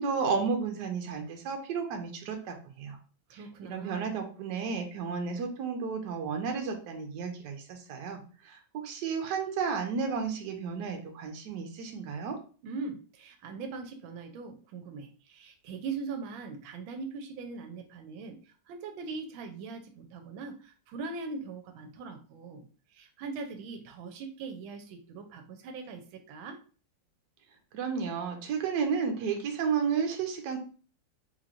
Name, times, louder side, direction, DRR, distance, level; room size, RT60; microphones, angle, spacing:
voice 1, 0.0-3.0 3.3-12.4 27.7-30.6, right 5 dB, 65° right, 4 dB, 1.2 m, -32 dB
voice 2, 3.3-4.1 12.6-22.7 22.9-26.6, right 4 dB, 85° right, 5 dB, 1.4 m, -41 dB
3.8 x 3.0 x 2.4 m, 0.38 s
omnidirectional pair, 2.2 m